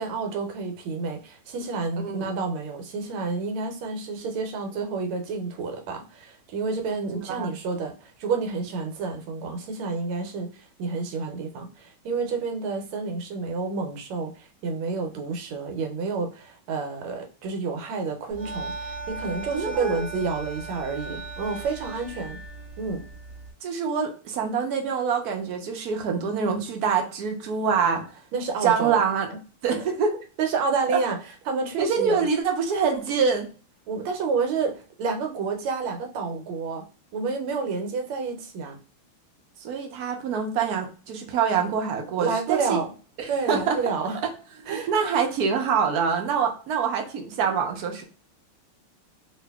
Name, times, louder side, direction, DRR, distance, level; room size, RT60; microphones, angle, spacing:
voice 1, 0.0-22.4 22.8-23.0 28.3-29.0 30.4-31.2 31.5-32.3 33.9-36.8 37.1-38.8 42.2-42.9 43.3-44.2 44.7-44.9, right 4 dB, 90° right, 1.6 m, -29 dB
voice 2, 2.0-2.3 7.3-7.5 19.5-20.0 23.6-28.2 28.6-29.3 29.6-30.2 31.8-33.5 39.6-42.8 43.2-43.8 44.6-48.0, right 6 dB, 70° right, 0.9 m, -25 dB
sound 1, 18.3-23.5, right 3 dB, 40° right, 1.2 m, -37 dB
2.9 x 2.9 x 3.4 m
omnidirectional pair, 2.3 m